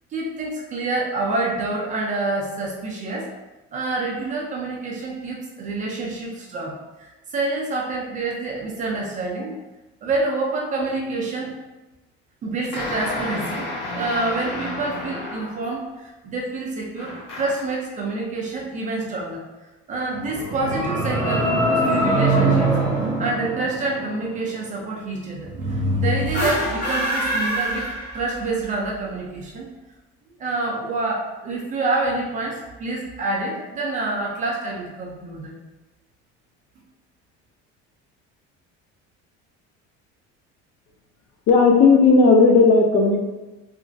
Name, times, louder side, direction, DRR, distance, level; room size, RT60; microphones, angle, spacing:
voice 1, 0.1-3.3 3.7-9.6 10.0-11.5 12.4-19.4 19.9-22.7 23.2-29.7 30.4-35.5, right 2 dB, 25° right, -3 dB, 0.4 m, -27 dB
sound 1, 12.7-15.7 17.0-17.8, left 2 dB, 80° left, 0.9 m, -31 dB
sound 2, 20.1-24.3, right 2 dB, 10° right, 0.8 m, -22 dB
sound 3, 26.2-28.6, right 1 dB, 25° left, 0.8 m, -25 dB
voice 2, 41.5-43.2, left 4 dB, 45° left, 1 dB, 0.4 m, -14 dB
2.9 x 2.5 x 2.5 m, 1.1 s
cardioid pair, 165°, 30 cm